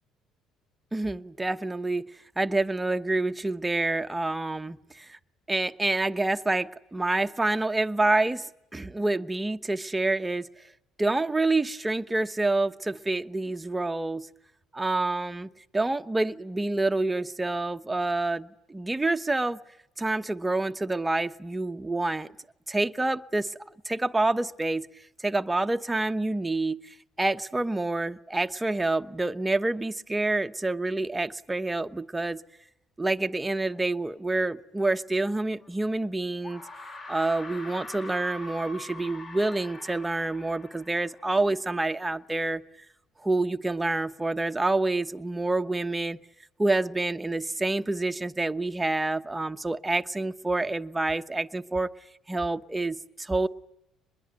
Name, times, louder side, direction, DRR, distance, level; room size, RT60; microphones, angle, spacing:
voice 1, 0.9-2.0 2.4-5.2 5.5-10.5 11.0-14.3 14.7-19.6 20.0-22.3 22.7-23.6 23.8-24.9 25.2-32.4 33.0-36.6 37.1-42.6 43.2-46.2 46.6-51.9 52.3-53.5, right 2 dB, 10° right, 8 dB, 1.0 m, -27 dB
sound 1, 35.6-35.7 36.4-41.6, left 2 dB, 30° left, 3.6 m, -43 dB
25.0 x 21.5 x 9.3 m, 0.82 s
cardioid pair, 125°, 0 cm